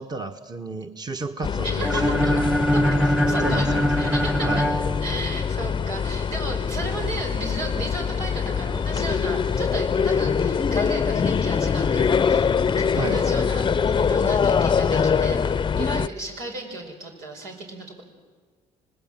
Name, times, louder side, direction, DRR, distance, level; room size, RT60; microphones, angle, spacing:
voice 1, 0.0-2.5 3.4-3.9 4.4-4.7 13.0-13.2, right 3 dB, 25° right, 6 dB, 1.3 m, -32 dB
sound 1, 1.4-16.1, left 6 dB, 30° left, 0.7 m, -23 dB
voice 2, 1.6-2.0 2.7-2.8 3.3-4.6 5.0-13.7 13.9-18.0, right 2 dB, 85° right, 1 dB, 5.2 m, -34 dB
sound 2, 1.8-5.7, equal, 5° right, 1.2 m, -23 dB
26.5 x 19.5 x 7.5 m, 1.5 s
supercardioid pair, 75°, 15 cm